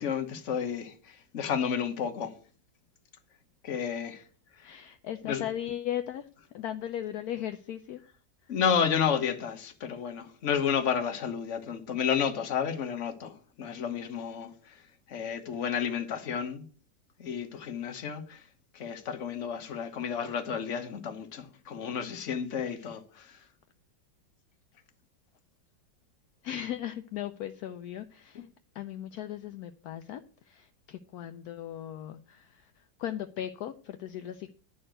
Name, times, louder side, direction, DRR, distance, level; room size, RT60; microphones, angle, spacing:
voice 1, 0.0-2.3 3.6-4.2 4.6-4.8 5.2-5.4 8.5-14.7 15.1-16.6 17.2-18.4 18.7-23.4, left 7 dB, 45° left, 1.2 m, -31 dB
voice 2, 4.6-8.0 8.4-8.6 26.4-28.5 28.7-34.5, left 11 dB, 70° left, 1.0 m, -37 dB
11.0 x 4.3 x 7.7 m
omnidirectional pair, 2.0 m